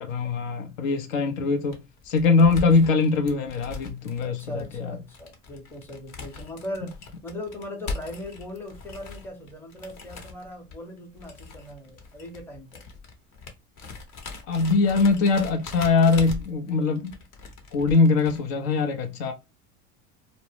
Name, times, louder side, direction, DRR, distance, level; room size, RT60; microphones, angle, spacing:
voice 1, 0.0-5.0 14.5-17.1 17.7-19.3, left 4 dB, 70° left, 0.7 m, -22 dB
sound 1, 1.6-18.4, left 4 dB, 45° left, 0.9 m, -40 dB
voice 2, 4.2-7.0 7.2-12.8, left 1 dB, 5° left, 0.7 m, -39 dB
2.1 x 2.0 x 3.2 m
hypercardioid pair, 85°, 42 cm